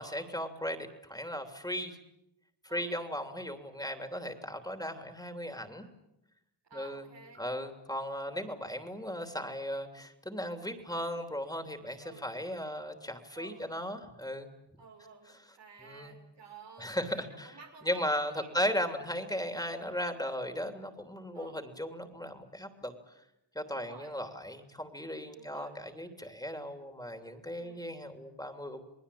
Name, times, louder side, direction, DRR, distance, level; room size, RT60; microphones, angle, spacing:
voice 1, 0.0-2.0 2.6-5.9 6.7-7.1 7.4-14.5 15.8-16.2 16.8-17.6 17.8-22.9 23.5-28.8, equal, 10° left, 6 dB, 3.3 m, -36 dB
voice 2, 6.7-7.4 12.0-12.3 13.3-13.7 14.8-18.7 21.3-21.6 23.7-24.2 25.3-25.8 27.6-27.9, right 4 dB, 85° right, 1 dB, 6.5 m, -52 dB
28.5 x 20.0 x 8.6 m, 0.85 s
cardioid pair, 75°, 42 cm